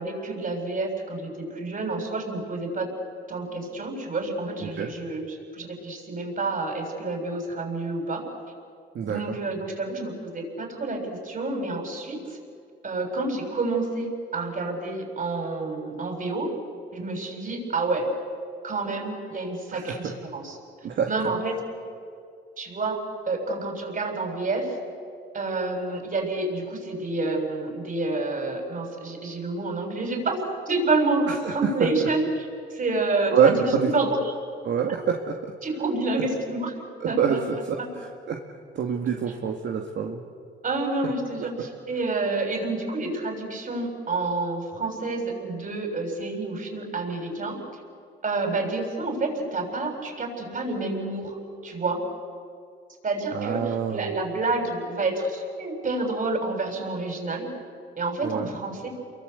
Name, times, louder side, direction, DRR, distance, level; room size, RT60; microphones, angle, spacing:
voice 1, 0.0-2.9 3.3-8.3 9.0-12.4 12.8-16.5 16.9-18.1 18.6-20.6 21.1-21.6 22.6-23.0 23.3-24.7 25.3-30.4 30.7-34.2 34.9-35.0 35.6-36.7 37.1-37.4 37.8-37.9 40.6-47.6 48.2-51.4 51.6-52.0 53.0-57.5 58.0-58.9, right 3 dB, 40° right, 3 dB, 7.1 m, -29 dB
voice 2, 8.9-9.4 19.7-20.1 20.8-21.1 31.3-31.5 33.3-33.9 34.6-35.5 37.2-37.4 37.7-38.4 38.8-40.2 53.3-54.1 58.2-58.5, right 7 dB, 65° right, 1 dB, 2.2 m, -26 dB
29.5 x 23.0 x 8.3 m, 2.3 s
cardioid pair, 90°, 20 cm